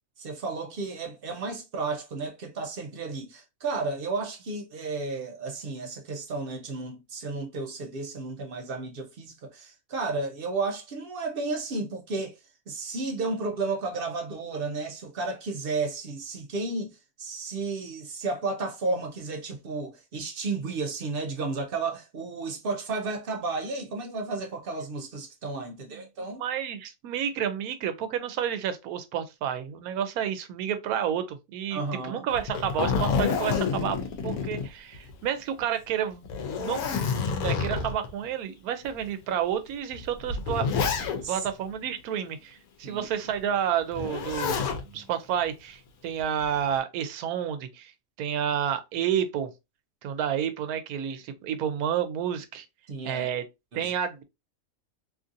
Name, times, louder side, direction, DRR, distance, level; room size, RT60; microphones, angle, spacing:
voice 1, 0.2-12.4 12.7-16.9 17.2-26.4 31.7-32.2 41.2-41.4 42.8-43.1 44.8-45.1 52.9-53.3 53.7-53.9, right 3 dB, 60° right, 0.6 m, -33 dB
voice 2, 25.7-26.0 26.4-36.3 36.6-36.8 37.3-40.7 41.3-44.6 44.9-47.9 48.2-49.5 50.0-52.6 53.0-53.4 53.7-54.2, right 9 dB, 80° right, 1.0 m, -30 dB
Zipper (clothing), 32.3-35.2 35.6-35.7 36.2-38.1 38.8-39.0 39.9-41.5 43.9-44.8 46.2-46.7, left 5 dB, 90° left, 1.1 m, -28 dB
2.9 x 2.6 x 2.5 m
omnidirectional pair, 1.5 m